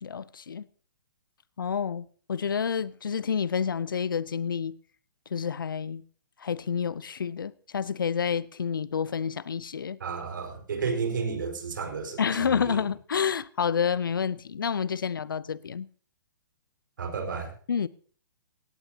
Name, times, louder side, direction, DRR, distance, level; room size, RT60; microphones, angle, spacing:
voice 1, 0.0-0.7 1.6-4.7 5.3-6.0 6.4-10.0 12.2-15.9 17.7-17.9, left 7 dB, 80° left, 0.6 m, -29 dB
voice 2, 10.0-12.7 17.0-17.5, right 5 dB, 70° right, 4.7 m, -32 dB
17.5 x 17.0 x 2.8 m
hypercardioid pair, 125°, 11 cm